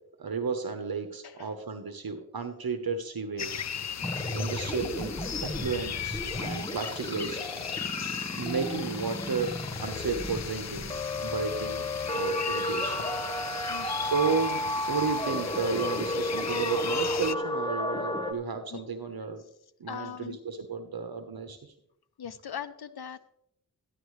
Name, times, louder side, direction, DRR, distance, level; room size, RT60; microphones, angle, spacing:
voice 1, 0.2-3.7 4.3-7.4 8.4-9.5 9.8-10.9 11.2-11.9 12.1-13.0 13.6-19.4 19.8-21.7, right 5 dB, 70° right, 7 dB, 1.1 m, -33 dB
sound 1, 3.4-17.4, left 8 dB, 45° left, 0.5 m, -37 dB
sound 2, 4.0-18.3, left 1 dB, 10° left, 1.3 m, -33 dB
voice 2, 13.7-14.0 18.7-18.8 19.9-20.4 22.2-23.2, left 8 dB, 80° left, 10 dB, 0.8 m, -40 dB
14.0 x 11.5 x 3.2 m, 0.75 s
wide cardioid pair, 65°, 38 cm